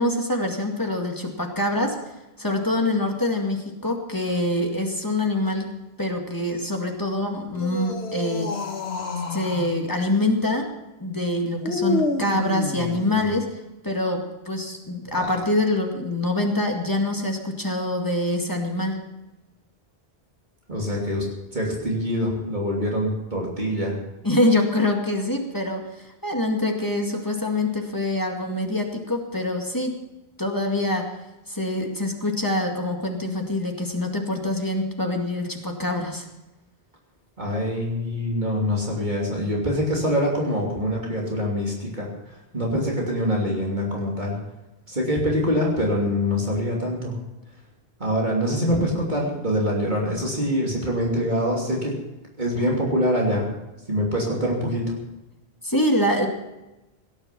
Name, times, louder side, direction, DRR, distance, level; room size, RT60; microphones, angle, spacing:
voice 1, 0.0-2.0 2.4-5.7 6.0-8.5 9.3-10.7 11.0-13.5 13.8-19.0 24.2-30.0 30.4-31.1 31.5-36.3 55.6-56.3, left 1 dB, 20° left, 2 dB, 2.1 m, -25 dB
sound 1, 7.5-9.8 11.6-13.4 15.0-15.6, left 3 dB, 85° left, 1.7 m, -29 dB
voice 2, 20.7-21.2 21.5-24.0 37.4-44.4 44.9-47.2 48.0-51.9 52.4-53.5 53.9-55.0, equal, 45° right, -2 dB, 3.1 m, -24 dB
17.5 x 10.5 x 6.1 m, 0.99 s
omnidirectional pair, 1.0 m